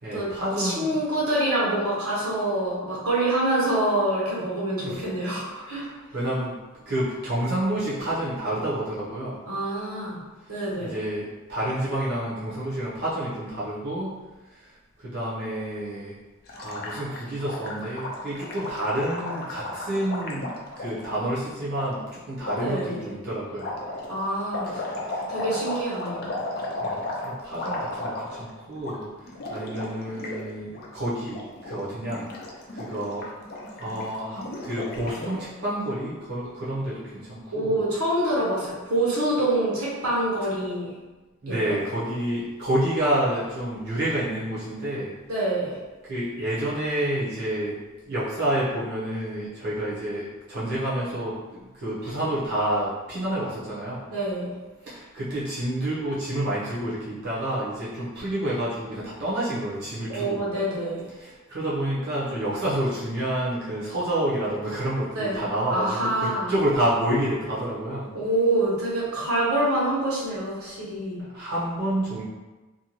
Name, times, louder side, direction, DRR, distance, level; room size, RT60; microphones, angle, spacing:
voice 1, 0.0-1.0 4.8-5.1 5.6-6.5 6.9-9.4 10.8-14.1 14.5-14.7 15.0-16.1 16.5-23.7 24.8-25.2 26.8-32.2 32.7-33.3 33.7-37.8 41.4-45.1 46.0-47.8 48.1-54.0 54.8-60.4 61.1-68.1 71.3-72.2, right 1 dB, 50° right, -9 dB, 0.7 m, -29 dB
voice 2, 0.6-5.8 9.5-10.2 10.5-10.9 22.6-23.0 24.1-24.8 25.3-26.3 37.5-40.9 41.5-41.7 45.3-45.8 54.1-54.5 60.1-61.0 65.1-65.4 65.7-66.5 68.1-71.2, right 1 dB, 80° right, -6 dB, 0.9 m, -26 dB
Gurgling, 16.5-21.1 21.7-21.9 22.4-22.8 23.6-28.5 28.8-29.0 29.2-30.4 30.7-30.9 31.2-31.8 32.0-35.5, left 2 dB, 45° left, 0.5 m, -34 dB
2.6 x 2.2 x 2.9 m, 1.2 s
head